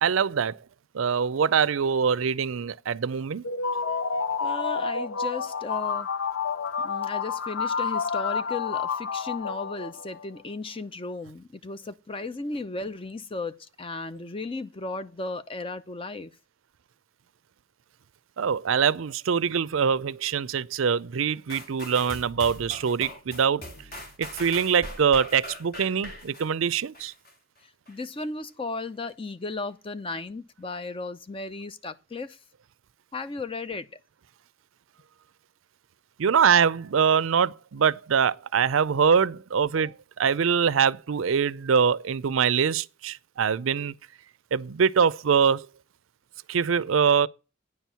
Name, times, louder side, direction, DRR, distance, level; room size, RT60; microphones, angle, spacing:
voice 1, 0.0-0.6 0.9-3.4 18.4-23.6 24.2-27.1 36.2-43.9 44.5-45.7 46.5-47.3, right 6 dB, 90° right, 0.5 m, -23 dB
sound 1, 3.4-10.3, left 5 dB, 90° left, 0.6 m, -29 dB
voice 2, 4.4-6.1 6.8-16.3 27.9-32.4 33.1-33.9, left 3 dB, 25° left, 0.6 m, -35 dB
sound 2, 21.5-27.3 27.9-28.0, left 1 dB, 50° left, 2.7 m, -41 dB
9.7 x 4.5 x 6.9 m
head